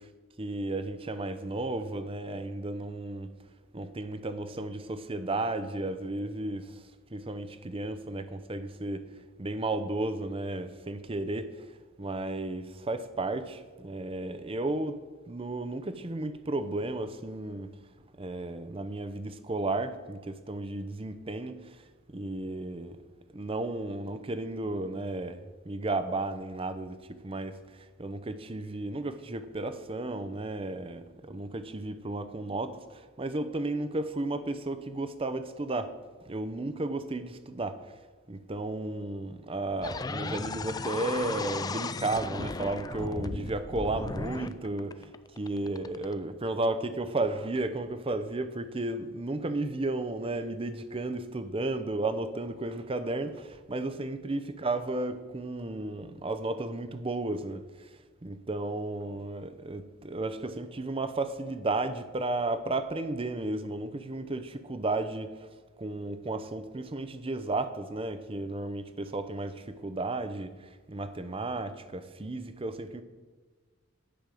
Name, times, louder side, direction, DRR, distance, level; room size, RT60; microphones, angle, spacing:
voice 1, 0.4-3.3 3.7-6.8 7.1-9.1 9.4-11.7 12.0-15.0 15.3-17.7 18.2-21.8 22.1-23.0 23.3-35.9 36.2-37.9 38.3-57.9 58.2-65.5 65.8-73.0, right 2 dB, 30° right, 0.6 m, -33 dB
sound 1, 39.8-46.1, left 3 dB, 20° left, 0.3 m, -36 dB
10.0 x 5.2 x 7.6 m
head